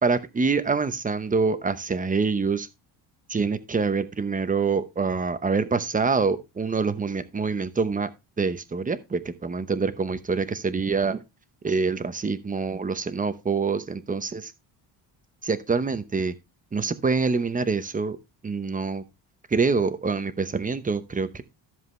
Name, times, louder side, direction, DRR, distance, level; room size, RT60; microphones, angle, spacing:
voice 1, 0.0-2.7 3.3-8.1 8.4-11.2 11.6-14.5 15.4-16.3 16.7-18.2 18.4-19.0 19.5-21.4, right 4 dB, 15° right, 0.8 m, -25 dB
13.5 x 7.4 x 3.2 m
cardioid pair, 150°, 47 cm